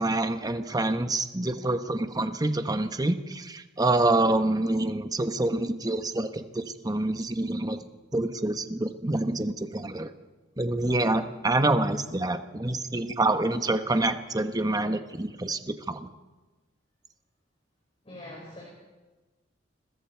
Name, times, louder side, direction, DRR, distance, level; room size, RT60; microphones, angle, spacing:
voice 1, 0.0-7.8 8.1-10.1 10.6-15.6 15.9-16.1, right 2 dB, 20° right, 8 dB, 1.2 m, -27 dB
voice 2, 18.0-18.6, left 1 dB, 30° left, -2 dB, 5.4 m, -43 dB
30.0 x 22.0 x 4.6 m, 1.2 s
head